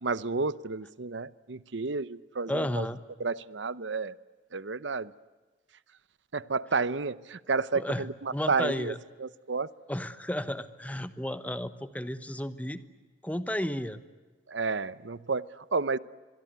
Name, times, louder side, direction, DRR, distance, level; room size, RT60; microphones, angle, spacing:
voice 1, 0.0-2.9 3.2-4.1 4.5-5.1 6.3-9.7 14.5-16.0, right 4 dB, 75° right, 17 dB, 0.8 m, -31 dB
voice 2, 2.5-3.0 7.7-8.0 8.3-9.0 9.9-12.8 13.2-14.0, left 1 dB, 10° left, 12 dB, 1.1 m, -33 dB
25.0 x 23.0 x 9.4 m, 1.3 s
head